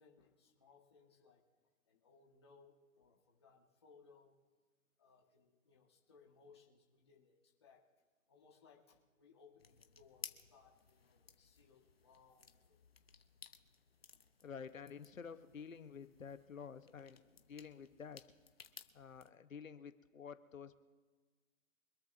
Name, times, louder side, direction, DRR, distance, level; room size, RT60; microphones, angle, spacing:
voice 1, 0.0-1.4 1.9-4.3 5.0-7.8 8.3-12.8, left 5 dB, 20° left, -2 dB, 1.6 m, -66 dB
sound 1, 9.6-19.3, left 5 dB, 45° left, 0.9 m, -58 dB
voice 2, 14.4-18.3 18.9-20.8, left 6 dB, 70° left, 11 dB, 1.2 m, -50 dB
25.5 x 13.0 x 2.7 m, 1.4 s
hypercardioid pair, 175°, 42 cm